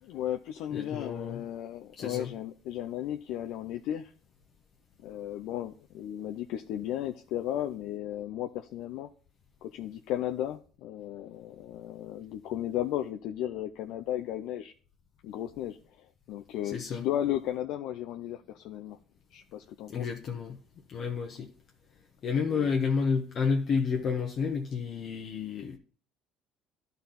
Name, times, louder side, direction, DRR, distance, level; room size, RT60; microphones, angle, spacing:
voice 1, 0.0-4.1 5.0-9.1 9.6-14.7 15.2-19.0 19.3-20.0 22.5-22.7, left 12 dB, 75° left, 0.4 m, -35 dB
voice 2, 0.7-1.4 2.0-2.3 16.7-17.0 19.9-20.6 20.9-21.5 22.2-25.8, left 5 dB, 50° left, 0.9 m, -30 dB
11.5 x 4.0 x 4.1 m
supercardioid pair, 100°, 0 cm